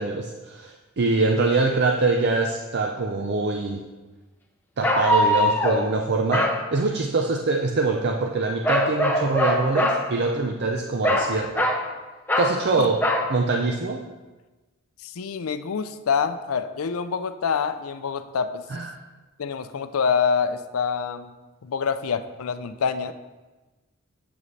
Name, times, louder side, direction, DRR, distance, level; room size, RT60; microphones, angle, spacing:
voice 1, 0.0-3.9 4.8-11.7 12.4-13.1 13.3-14.1 18.7-18.9, right 3 dB, 55° right, 3 dB, 0.5 m, -24 dB
sound 1, 3.2-3.3 4.8-5.9 6.3-6.6 8.6-10.0 11.0-11.8 12.3-12.6 13.0-13.3, left 1 dB, 10° left, 0.7 m, -22 dB
voice 2, 15.0-18.7 19.4-21.3 21.6-23.1, left 6 dB, 90° left, 11 dB, 0.5 m, -26 dB
8.0 x 7.4 x 3.2 m, 1.2 s
head